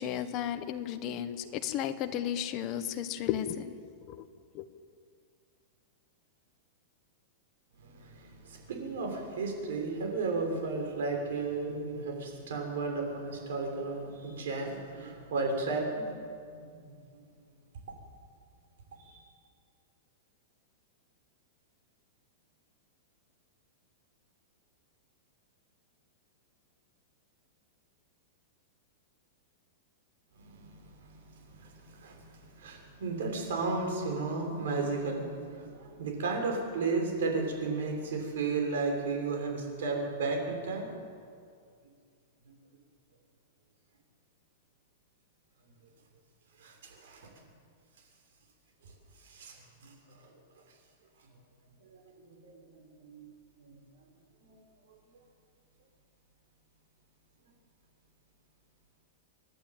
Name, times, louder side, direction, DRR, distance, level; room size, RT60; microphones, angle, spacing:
voice 1, 0.0-3.7 4.1-4.2 4.5-4.6, left 10 dB, 30° left, 8 dB, 1.2 m, -34 dB
voice 2, 7.8-17.3 19.0-19.2 30.4-40.9 42.4-42.5 46.6-47.3 48.8-48.9 49.2-50.3 51.2-51.3 51.8-53.3 53.6-54.0 54.4-54.6 54.9-55.0, right 3 dB, 70° right, 2 dB, 6.3 m, -34 dB
28.5 x 11.5 x 9.1 m, 2.2 s
supercardioid pair, 165°, 0 cm